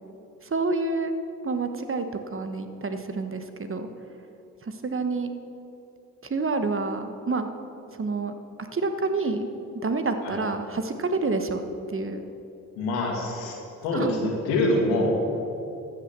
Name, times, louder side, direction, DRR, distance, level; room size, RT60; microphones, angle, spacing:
voice 1, 0.4-1.1 1.4-3.9 4.6-5.3 6.3-7.5 8.0-8.3 8.7-9.5 9.8-11.6 11.9-12.3 13.9-14.2, right 3 dB, 35° right, 8 dB, 1.2 m, -28 dB
voice 2, 12.8-13.5 13.8-15.1, left 1 dB, 90° left, 0 dB, 2.1 m, -25 dB
14.0 x 7.0 x 6.9 m, 2.9 s
hypercardioid pair, 50°, 38 cm